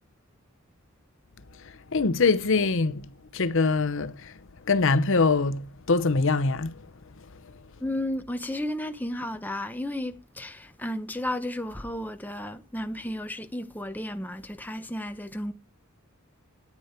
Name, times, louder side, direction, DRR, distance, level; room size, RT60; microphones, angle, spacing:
voice 1, 1.9-3.1 3.3-4.3 4.7-6.7, left 4 dB, 65° left, 0.8 m, -23 dB
voice 2, 7.8-15.5, left 1 dB, 10° left, 0.8 m, -33 dB
9.8 x 9.5 x 4.5 m
head